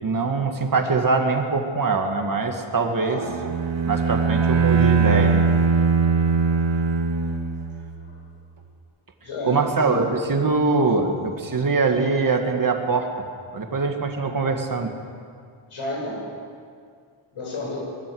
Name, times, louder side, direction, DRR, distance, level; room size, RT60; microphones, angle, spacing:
voice 1, 0.0-3.2 3.9-5.5 9.4-13.1 13.5-14.9, right 4 dB, 40° right, 4 dB, 2.1 m, -23 dB
voice 2, 2.9-3.3 6.2-6.3 8.0-8.2 9.2-10.1 15.7-16.2 17.3-17.8, left 2 dB, 85° left, -2 dB, 7.5 m, -32 dB
Bowed string instrument, 3.2-8.0, right 5 dB, 60° right, 2.1 m, -21 dB
22.5 x 16.0 x 7.9 m, 2.2 s
wide cardioid pair, 135°, 49 cm